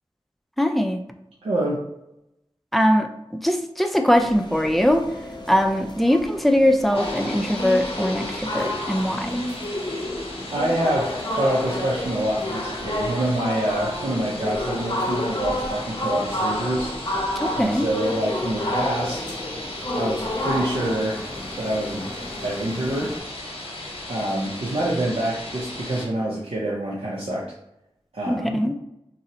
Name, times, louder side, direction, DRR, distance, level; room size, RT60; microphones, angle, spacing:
voice 1, 0.6-1.0 2.7-5.0 5.5-9.3 17.4-17.9 28.3-28.7, equal, ahead, 5 dB, 0.4 m, -21 dB
voice 2, 1.4-1.8 10.5-16.9 17.5-19.3 19.9-21.2 21.6-23.1 24.1-27.5 28.1-28.6, right 1 dB, 85° right, -5 dB, 0.5 m, -26 dB
sound 1, 4.1-23.2, left 1 dB, 50° left, 0.7 m, -30 dB
sound 2, 6.9-26.1, left 1 dB, 85° left, 0.9 m, -37 dB
3.9 x 2.0 x 2.7 m, 0.84 s
wide cardioid pair, 60°, 10 cm